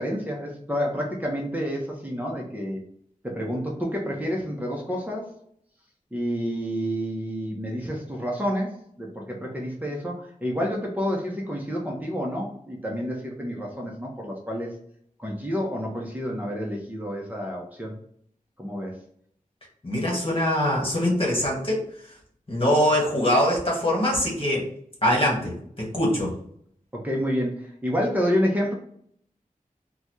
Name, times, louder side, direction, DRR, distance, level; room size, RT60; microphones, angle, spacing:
voice 1, 0.0-2.8 3.2-5.3 6.1-14.7 15.2-17.9 18.6-19.0 26.9-28.7, equal, 10° right, -2 dB, 0.8 m, -29 dB
voice 2, 19.8-21.9 22.5-24.7 25.0-26.3, left 1 dB, 40° left, -3 dB, 1.4 m, -23 dB
4.0 x 2.3 x 3.0 m, 0.65 s
wide cardioid pair, 60°, 15 cm